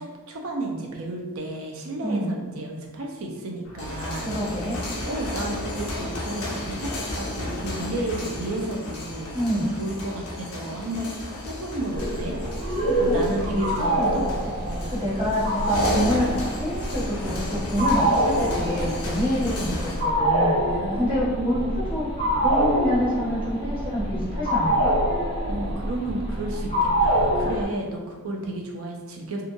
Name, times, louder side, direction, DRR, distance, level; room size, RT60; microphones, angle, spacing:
voice 1, 0.0-4.4 5.1-9.3 9.8-12.4 13.0-14.2 14.7-15.0 20.6-21.7 25.5-29.4, right 1 dB, 70° right, 0 dB, 0.5 m, -32 dB
sound 1, 3.6-20.1, left 1 dB, 80° left, 0.6 m, -34 dB
voice 2, 4.1-4.8 9.3-9.7 12.8-14.2 14.8-20.6 20.9-25.0, equal, 25° right, -8 dB, 0.9 m, -27 dB
sound 2, 11.9-27.6, right 1 dB, 20° left, 1.2 m, -25 dB
2.8 x 2.4 x 2.6 m, 1.3 s
head